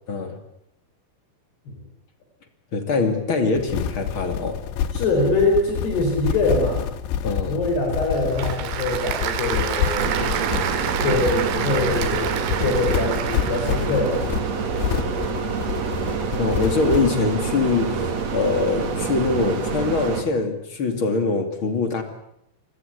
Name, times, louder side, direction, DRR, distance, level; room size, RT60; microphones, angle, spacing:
voice 1, 0.1-0.4 2.7-4.6 7.2-7.6 16.4-22.0, left 3 dB, 35° left, 7 dB, 2.4 m, -23 dB
sound 1, 3.5-17.2, left 9 dB, 70° left, 3.3 m, -28 dB
voice 2, 4.9-6.8 7.5-10.1 11.0-12.3 12.6-14.2 15.0-15.1, left 2 dB, 55° left, 2 dB, 6.7 m, -23 dB
Applause / Crowd, 7.8-14.2, right 9 dB, 85° right, 4.8 m, -29 dB
sound 2, 10.0-20.2, right 5 dB, 45° right, 2.7 m, -27 dB
28.0 x 21.0 x 8.2 m, 0.74 s
omnidirectional pair, 5.8 m